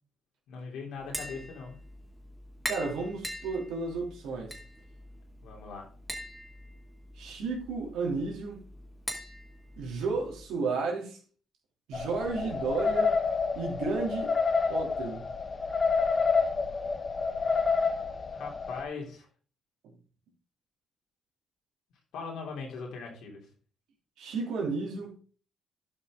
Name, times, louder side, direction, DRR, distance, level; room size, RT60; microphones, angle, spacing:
voice 1, 0.5-1.8 5.4-5.9 12.1-12.6 18.3-19.3 22.1-23.5, left 5 dB, 80° left, 3.1 m, -40 dB
Tap, 1.0-10.5, equal, 5° left, 2.4 m, -43 dB
voice 2, 2.7-4.6 7.2-8.6 9.8-11.2 11.9-13.2 13.5-14.4 14.7-15.4 24.2-25.1, right 4 dB, 85° right, 2.9 m, -33 dB
sound 1, 11.9-18.8, left 4 dB, 35° left, 0.9 m, -28 dB
11.5 x 5.7 x 3.7 m
cardioid pair, 90°, 0 cm